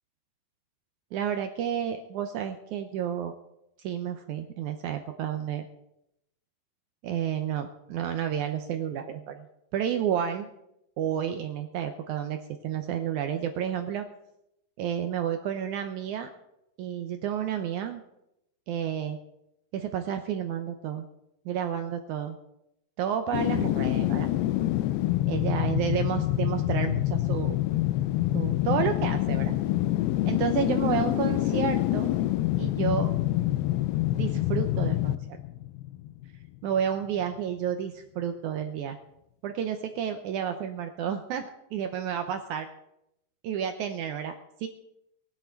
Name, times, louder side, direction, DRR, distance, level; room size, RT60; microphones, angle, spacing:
voice 1, 1.1-3.3 3.8-5.7 7.0-9.5 9.7-10.5 11.0-14.0 14.8-16.3 16.8-18.0 18.7-19.2 19.7-21.1 21.4-22.4 23.0-24.3 25.3-27.6 28.3-29.5 30.3-32.1 32.6-33.1 34.1-35.2 36.6-39.0 39.4-41.4 41.7-42.7 43.4-44.3 44.6-44.7, right 9 dB, 85° right, 7 dB, 1.7 m, -30 dB
sound 1, 23.3-36.4 36.7-36.8, left 15 dB, 90° left, 2.6 m, -26 dB
18.5 x 10.5 x 4.5 m, 0.84 s
omnidirectional pair, 4.4 m